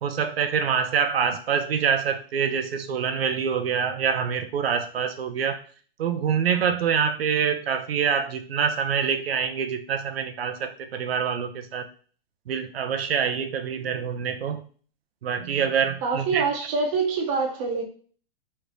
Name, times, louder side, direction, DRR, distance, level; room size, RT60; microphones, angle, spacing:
voice 1, 0.0-5.6 6.0-11.9 12.5-14.6 15.2-16.4, right 7 dB, 90° right, 0.6 m, -25 dB
voice 2, 16.0-17.9, right 4 dB, 35° right, 0.8 m, -25 dB
3.2 x 2.6 x 3.2 m
hypercardioid pair, 145°, 29 cm